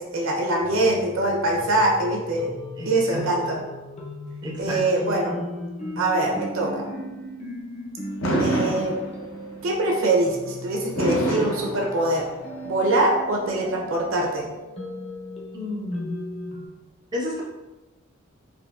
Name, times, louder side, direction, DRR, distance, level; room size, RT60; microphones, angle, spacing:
voice 1, 0.0-2.5 2.8-3.6 4.6-5.4 6.0-6.8 8.4-9.0 9.6-12.3 12.6-14.5, right 2 dB, 70° right, -1 dB, 0.7 m, -23 dB
sound 1, 0.6-16.7, left 1 dB, 30° left, 0.6 m, -37 dB
voice 2, 2.8-3.3 4.4-4.8 15.5-16.3 17.1-17.4, left 1 dB, 20° right, -4 dB, 0.5 m, -31 dB
Fireworks, 8.2-9.5 11.0-12.5, right 1 dB, 70° left, 0.7 m, -26 dB
3.8 x 2.7 x 2.4 m, 1.1 s
head